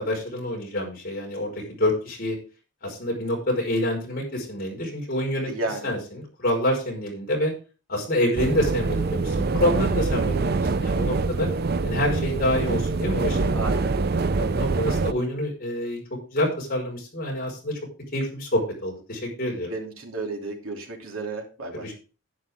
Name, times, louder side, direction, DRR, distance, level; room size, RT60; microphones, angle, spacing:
voice 1, 0.0-1.5 1.8-2.4 2.8-5.5 5.8-7.5 7.9-11.5 11.8-13.7 14.4-16.0 16.3-17.8 18.1-19.7 21.8-21.9, left 1 dB, 45° left, -1 dB, 5.1 m, -27 dB
voice 2, 5.5-5.9 13.5-13.9 19.7-21.9, right 3 dB, 85° right, 2 dB, 2.9 m, -32 dB
sound 1, 8.4-15.1, right 3 dB, 45° right, 0.5 m, -25 dB
11.5 x 9.5 x 3.6 m, 0.34 s
head